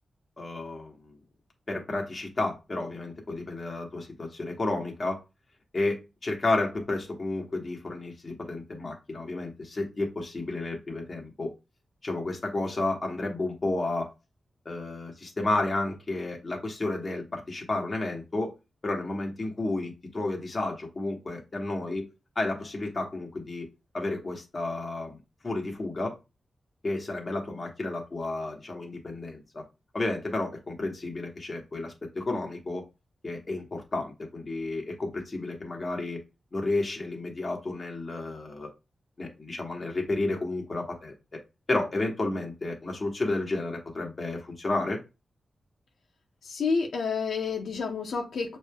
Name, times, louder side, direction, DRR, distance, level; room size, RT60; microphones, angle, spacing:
voice 1, 0.4-1.1 1.7-5.2 5.7-11.5 12.0-14.1 14.6-18.5 18.8-22.1 22.3-23.7 23.9-25.2 25.4-26.1 26.8-29.6 29.9-32.8 33.2-36.2 36.5-38.7 39.2-41.1 41.7-45.0, left 2 dB, 35° left, 0 dB, 1.4 m, -31 dB
voice 2, 46.4-48.6, left 5 dB, 90° left, 1 dB, 0.8 m, -29 dB
6.3 x 3.3 x 2.3 m, 0.26 s
wide cardioid pair, 135°, 0 cm